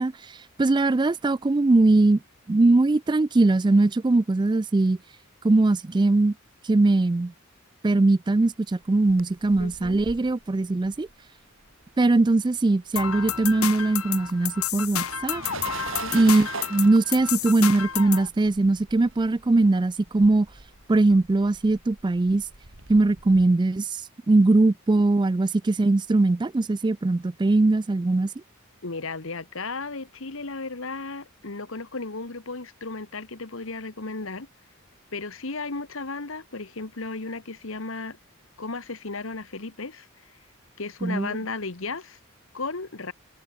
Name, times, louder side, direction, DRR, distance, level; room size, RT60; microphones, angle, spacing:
voice 1, 0.0-2.2 2.5-5.0 5.4-6.3 6.6-7.3 7.8-11.1 12.0-15.4 16.1-20.5 20.9-22.5 22.9-28.3 41.0-41.3, right 2 dB, 20° right, 0.4 m, -21 dB
sound 1, 8.8-12.5 12.7-23.5, right 4 dB, 60° right, 2.9 m, -42 dB
voice 2, 9.6-10.0 16.0-16.2 28.8-34.5 35.1-38.2 38.6-40.1 40.8-42.2 42.5-43.1, left 3 dB, 65° left, 1.5 m, -34 dB
sound 2, 13.0-18.3, left 9 dB, 90° left, 2.3 m, -30 dB
head